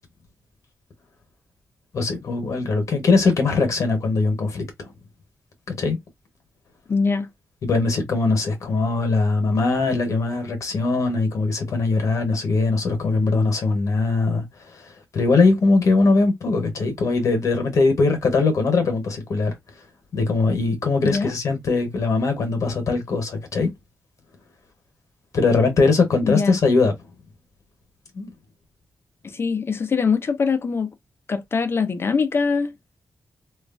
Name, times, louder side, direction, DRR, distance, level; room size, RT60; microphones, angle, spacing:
voice 1, 1.9-4.7 5.7-6.0 7.6-14.4 15.1-19.5 20.1-23.7 25.3-26.9 28.1-28.3, left 3 dB, 70° left, 1.0 m, -21 dB
voice 2, 6.9-7.3 21.0-21.3 26.2-26.6 29.2-30.9 31.3-32.7, left 5 dB, 45° left, 0.5 m, -22 dB
3.0 x 2.4 x 2.3 m
cardioid pair, 80°, 6 cm